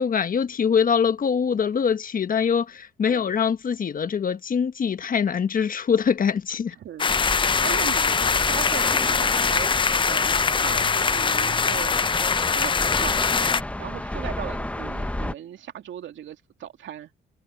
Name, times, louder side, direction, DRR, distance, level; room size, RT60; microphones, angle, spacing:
voice 1, 0.0-6.7, left 6 dB, 45° left, 1.3 m, -23 dB
voice 2, 6.7-9.7 10.0-12.0 12.5-13.5 13.8-17.1, right 10 dB, 70° right, 2.4 m, -38 dB
sound 1, 7.0-13.6, left 5 dB, 25° left, 0.5 m, -22 dB
sound 2, 7.1-15.3, left 1 dB, 5° left, 1.1 m, -33 dB
cardioid pair, 90°, 20 cm